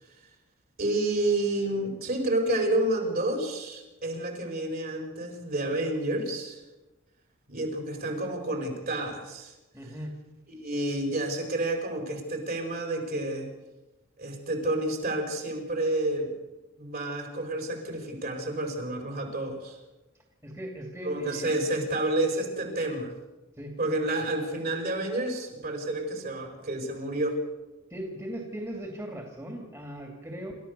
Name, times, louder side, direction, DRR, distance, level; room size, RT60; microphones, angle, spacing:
voice 1, 0.8-6.6 7.5-9.5 10.5-13.5 14.2-16.3 16.8-19.8 21.0-23.1 23.8-27.4, right 1 dB, 50° right, 4 dB, 5.1 m, -29 dB
voice 2, 9.7-10.1 20.4-21.8 23.6-23.7 24.1-24.2 27.9-30.6, equal, 15° right, 2 dB, 2.7 m, -38 dB
28.0 x 13.5 x 6.9 m, 1.1 s
head